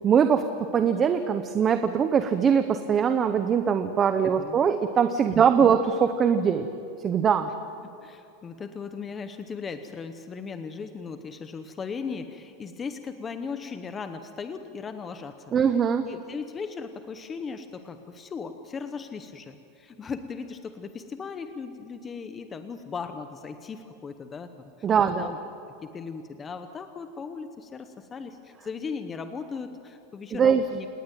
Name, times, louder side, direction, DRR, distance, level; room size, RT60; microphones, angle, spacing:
voice 1, 0.0-6.7 7.0-7.5 15.5-16.1 24.8-25.3 30.3-30.6, right 7 dB, 20° right, 9 dB, 0.8 m, -22 dB
voice 2, 5.3-5.7 8.0-15.5 16.0-24.7 25.2-25.4 25.8-30.9, left 5 dB, 15° left, 8 dB, 0.9 m, -37 dB
28.0 x 19.0 x 9.2 m, 2.6 s
supercardioid pair, 175°, 0 cm